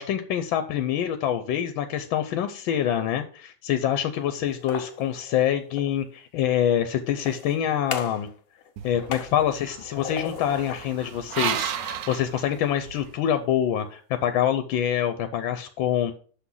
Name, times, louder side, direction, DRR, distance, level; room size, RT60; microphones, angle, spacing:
voice 1, 0.0-8.3 8.8-16.1, left 10 dB, 85° left, 9 dB, 1.4 m, -26 dB
sound 1, 4.5-6.0 7.1-8.3 8.6-10.9 11.3-12.6, left 8 dB, 55° left, 1.1 m, -38 dB
sound 2, 8.8-13.1, right 9 dB, 65° right, 0.9 m, -34 dB
6.4 x 6.1 x 5.5 m, 0.42 s
omnidirectional pair, 2.1 m